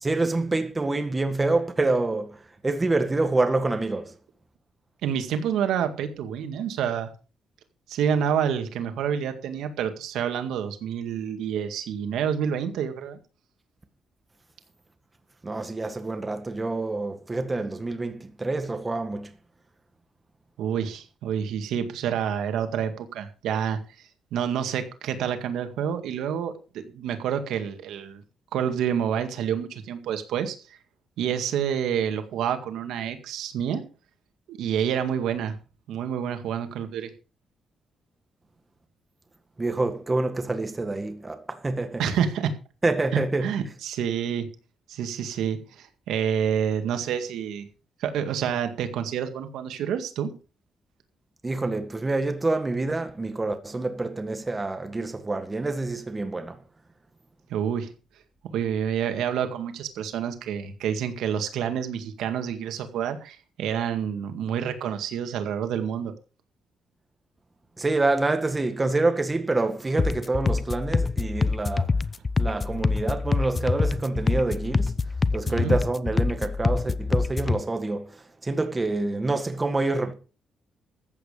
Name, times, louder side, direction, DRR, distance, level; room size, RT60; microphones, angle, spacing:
voice 1, 0.0-2.4 2.6-4.1 15.4-19.3 39.6-42.0 42.8-43.5 51.4-56.6 67.8-71.9 72.4-74.9 75.3-78.1 78.4-80.1, right 2 dB, 20° right, 1.8 m, -27 dB
voice 2, 5.0-7.1 7.9-13.2 20.6-23.8 24.3-28.2 28.5-30.6 31.2-33.9 34.5-35.5 35.9-37.1 42.0-42.6 43.1-44.5 44.9-47.7 48.0-50.3 57.5-57.9 58.5-66.1 75.5-75.8, right 8 dB, 90° right, 2.0 m, -28 dB
sound 1, 70.0-77.6, left 4 dB, 25° left, 0.7 m, -25 dB
14.5 x 8.6 x 5.1 m
cardioid pair, 120°, 0 cm